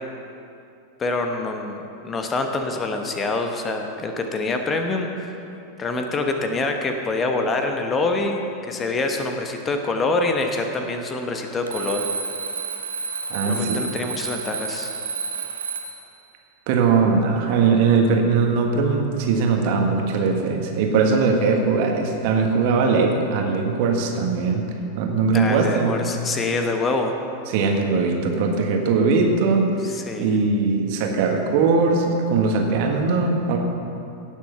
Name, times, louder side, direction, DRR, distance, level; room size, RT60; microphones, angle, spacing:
voice 1, 1.0-5.3 5.8-8.4 8.7-12.1 13.5-14.9 25.3-27.1 29.8-30.3, left 3 dB, 20° left, 4 dB, 1.1 m, -25 dB
Alarm, 11.7-16.1, right 5 dB, 70° right, 1.1 m, -30 dB
voice 2, 13.3-13.8 16.7-24.7 24.9-26.0 27.5-33.6, right 4 dB, 45° right, 2 dB, 1.6 m, -20 dB
17.5 x 7.2 x 5.8 m, 2.7 s
figure-of-eight pair, 90°, 0 cm